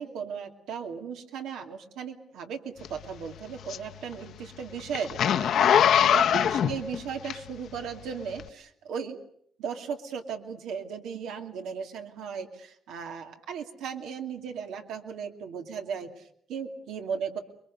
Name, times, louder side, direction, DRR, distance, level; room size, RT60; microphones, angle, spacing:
voice 1, 0.0-9.2 9.6-17.4, right 6 dB, 90° right, 4 dB, 2.6 m, -36 dB
Zipper (clothing), 2.8-7.8 8.3-8.5, left 9 dB, 60° left, 0.9 m, -23 dB
29.0 x 22.5 x 6.6 m, 0.66 s
cardioid pair, 145°, 0 cm